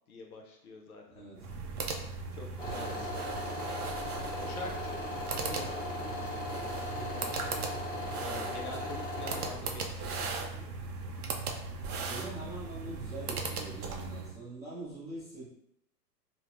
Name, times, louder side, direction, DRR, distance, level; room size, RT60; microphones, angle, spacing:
voice 1, 0.1-1.2 2.3-3.2 4.4-7.3 8.2-10.7, left 3 dB, 60° left, 1 dB, 0.5 m, -46 dB
voice 2, 1.1-1.5 2.6-3.1 11.9-15.4, right 2 dB, 25° right, -11 dB, 0.6 m, -44 dB
sound 1, 1.3-14.4, right 4 dB, 65° right, 0.5 m, -38 dB
sound 2, 2.6-9.5, left 2 dB, 30° left, 0.8 m, -38 dB
3.1 x 2.0 x 2.4 m, 0.80 s
hypercardioid pair, 180°, 50 cm